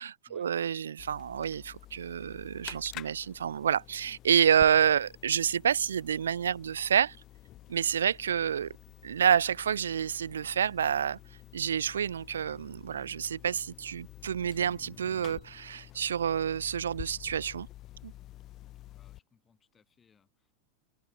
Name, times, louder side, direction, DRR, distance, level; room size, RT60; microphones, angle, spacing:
voice 1, 0.0-7.2 7.7-8.8 9.0-11.2 11.5-17.7 18.0-18.1, right 8 dB, 65° right, 0.4 m, -28 dB
sound 1, 1.0-19.2, left 15 dB, 35° left, 1.9 m, -50 dB
voice 2, 18.7-20.5, left 6 dB, 20° left, 6.0 m, -67 dB
figure-of-eight pair, 90°, 0 cm